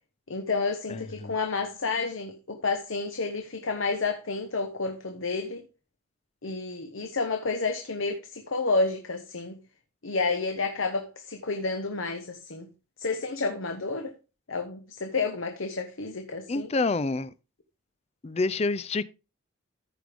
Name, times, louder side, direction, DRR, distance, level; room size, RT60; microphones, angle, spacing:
voice 1, 0.3-5.6 6.4-9.6 10.0-12.7 13.0-14.1 14.5-16.7, left 3 dB, 70° left, 1.1 m, -30 dB
voice 2, 0.9-1.3 16.5-17.3 18.2-19.0, left 3 dB, 30° left, 0.4 m, -28 dB
14.5 x 5.1 x 3.5 m
head